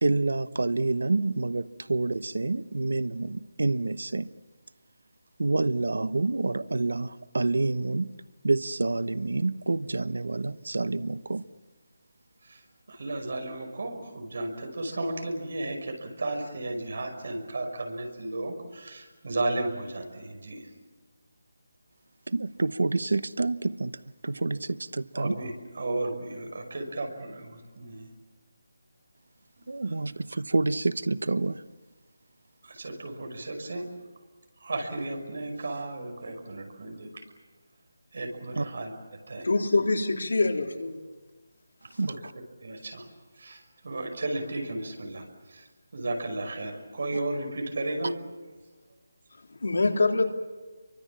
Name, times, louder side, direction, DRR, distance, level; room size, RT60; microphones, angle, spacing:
voice 1, 0.0-4.3 5.4-8.1 8.4-11.4 22.3-25.4 29.7-31.6 38.5-38.6 42.0-42.1, right 3 dB, 90° right, 0.9 m, -28 dB
voice 2, 12.9-20.7 25.1-28.1 29.6-29.7 32.6-33.8 34.6-37.2 38.1-38.9 39.3-39.5 42.1-42.2 42.6-43.1 43.4-45.7 45.9-48.1, right 2 dB, 45° right, 5.8 m, -34 dB
voice 3, 39.4-41.0 49.5-50.3, left 3 dB, 70° left, 3.5 m, -25 dB
30.0 x 24.5 x 7.4 m
hypercardioid pair, 180°, 0 cm